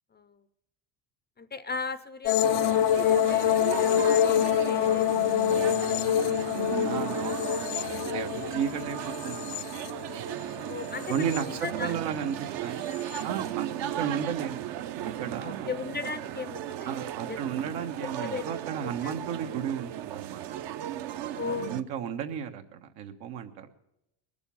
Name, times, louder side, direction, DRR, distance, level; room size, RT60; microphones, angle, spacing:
voice 1, 0.1-0.4 1.4-6.2 10.7-12.0 15.4-16.9 17.3-17.4 18.0-18.5 18.8-19.2 21.3-21.8, left 5 dB, 20° left, 13 dB, 0.4 m, -38 dB
sound 1, 2.3-10.4 10.8-11.7 12.9-13.2, left 11 dB, 75° left, 0.6 m, -26 dB
sound 2, 2.4-21.8, right 11 dB, 60° right, 0.7 m, -36 dB
voice 2, 6.8-10.0 11.1-12.9 13.2-14.7 15.0-15.7 16.9-20.5 21.7-23.7, right 8 dB, 85° right, 5 dB, 1.4 m, -34 dB
20.5 x 7.0 x 7.0 m, 0.87 s
supercardioid pair, 105°, 50 cm